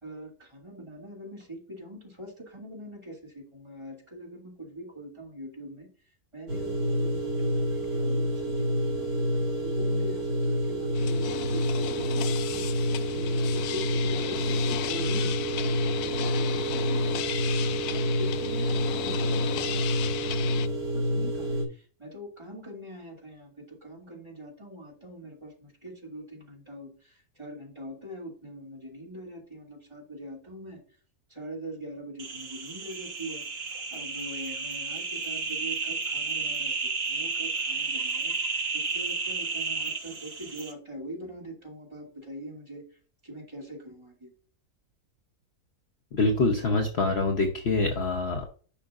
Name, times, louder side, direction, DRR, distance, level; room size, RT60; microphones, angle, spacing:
voice 1, 0.0-5.9 6.3-9.3 9.6-30.8 31.3-42.8 43.2-44.3, right 1 dB, 20° right, 0 dB, 2.6 m, -42 dB
sound 1, 6.5-21.7, equal, 75° right, 2.7 m, -28 dB
sound 2, 10.9-20.7, left 12 dB, 85° left, 1.1 m, -35 dB
sound 3, 32.2-40.7, right 4 dB, 45° right, 1.5 m, -32 dB
voice 2, 46.1-48.4, left 3 dB, 50° left, 3 dB, 1.0 m, -25 dB
10.0 x 5.7 x 2.5 m, 0.41 s
omnidirectional pair, 1.6 m